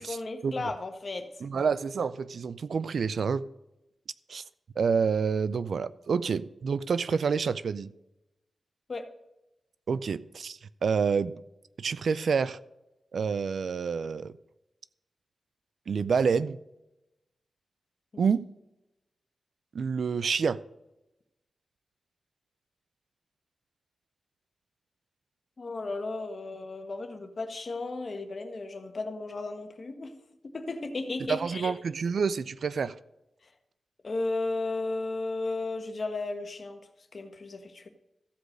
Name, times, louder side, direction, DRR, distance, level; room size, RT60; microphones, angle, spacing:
voice 1, 0.0-1.3 8.9-9.1 18.1-18.3 25.6-30.1 30.4-31.7 34.0-36.8 37.1-37.9, left 3 dB, 50° left, 1.4 m, -34 dB
voice 2, 1.4-3.5 4.3-4.4 4.8-7.9 9.9-11.3 11.8-12.6 13.1-14.3 15.9-16.6 18.2-18.4 19.7-20.6 31.3-33.0, right 5 dB, 75° right, 0.4 m, -28 dB
14.5 x 4.8 x 6.4 m
cardioid pair, 70°, 0 cm